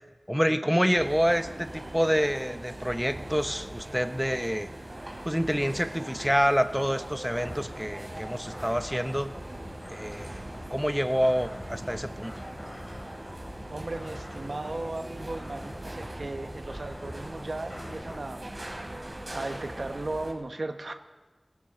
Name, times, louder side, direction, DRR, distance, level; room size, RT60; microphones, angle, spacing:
voice 1, 0.3-4.7 5.2-9.3 9.9-10.4 10.7-12.3, equal, 5° right, 9 dB, 0.8 m, -27 dB
sound 1, 1.0-20.3, right 1 dB, 50° right, 3.3 m, -41 dB
sound 2, 7.3-18.2, left 1 dB, 35° left, 2.8 m, -45 dB
voice 2, 13.7-18.4 19.1-20.9, right 2 dB, 80° right, 6 dB, 1.1 m, -36 dB
19.5 x 15.5 x 3.8 m, 1.2 s
wide cardioid pair, 45°, 0 cm